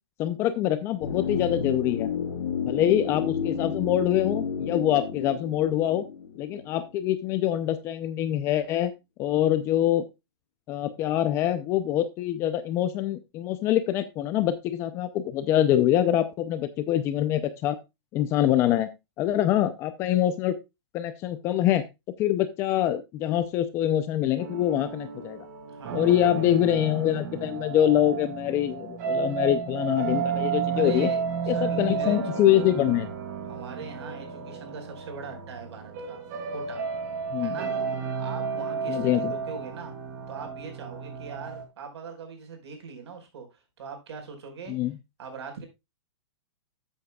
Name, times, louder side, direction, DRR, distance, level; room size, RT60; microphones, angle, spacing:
voice 1, 0.2-2.1 2.7-6.1 6.4-8.9 9.2-10.0 10.7-17.8 18.1-18.9 19.2-20.5 20.9-21.8 22.2-25.4 25.9-31.1 31.5-33.1 37.3-37.5 38.9-39.3 44.7-44.9, left 12 dB, 15° left, 0.5 m, -24 dB
sound 1, 1.0-7.0 7.3-7.4, left 7 dB, 60° left, 2.2 m, -31 dB
sound 2, 24.4-41.6, right 6 dB, 35° right, 2.5 m, -32 dB
voice 2, 25.7-26.4 30.7-32.8 33.4-36.2 36.5-36.8 37.4-37.7 38.2-40.0 40.3-44.7 45.2-45.7, right 5 dB, 65° right, 4.7 m, -41 dB
13.0 x 8.1 x 2.3 m
hypercardioid pair, 170°, 15 cm